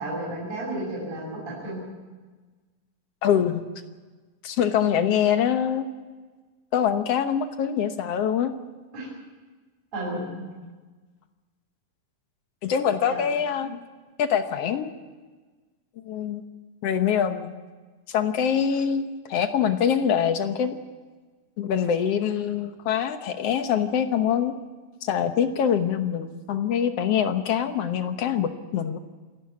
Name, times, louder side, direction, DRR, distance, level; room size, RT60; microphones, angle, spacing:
voice 1, 0.0-1.8 8.9-9.1 9.9-10.5 13.0-13.2, right 1 dB, 50° right, -6 dB, 7.8 m, -32 dB
voice 2, 3.2-3.6 4.4-5.9 6.7-8.5 12.6-13.8 14.2-14.9 16.0-16.4 16.8-17.5 18.1-20.8 21.6-24.5 25.0-29.0, left 8 dB, 65° left, 8 dB, 1.6 m, -24 dB
28.0 x 11.5 x 9.5 m, 1.3 s
omnidirectional pair, 4.0 m